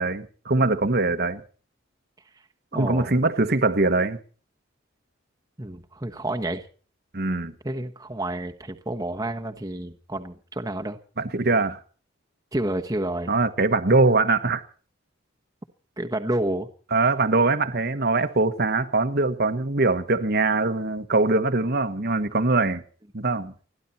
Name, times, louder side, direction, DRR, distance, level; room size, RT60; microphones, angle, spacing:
voice 1, 0.0-1.4 2.7-4.2 7.1-7.5 11.2-11.8 13.3-14.6 16.9-22.8 23.1-23.5, right 3 dB, 50° right, 1.3 m, -22 dB
voice 2, 2.7-3.2 5.6-6.6 7.6-11.0 12.5-13.3 16.0-16.7, right 1 dB, 20° right, 1.2 m, -29 dB
29.5 x 11.5 x 4.3 m
head